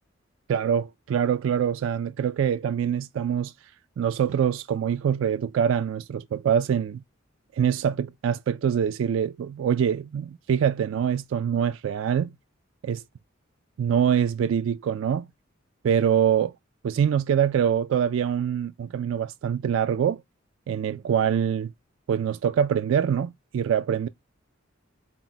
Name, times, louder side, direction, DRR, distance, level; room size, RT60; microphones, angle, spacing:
voice 1, 0.5-3.5 4.0-7.0 7.6-12.3 12.8-13.0 13.8-15.2 15.8-16.5 16.8-20.2 20.7-21.7 22.1-24.1, right 8 dB, 70° right, 0.3 m, -24 dB
4.5 x 2.1 x 3.8 m
head